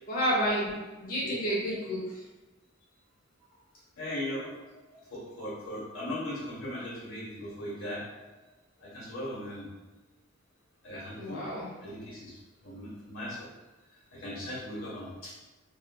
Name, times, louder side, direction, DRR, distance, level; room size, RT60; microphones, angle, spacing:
voice 1, 0.1-0.7 1.0-2.2 11.2-11.7, equal, 45° left, -7 dB, 0.6 m, -30 dB
voice 2, 1.2-1.8 4.0-8.3 8.8-9.7 10.8-13.5 14.1-15.4, left 1 dB, 90° left, -7 dB, 1.1 m, -39 dB
2.6 x 2.5 x 2.2 m, 1.1 s
head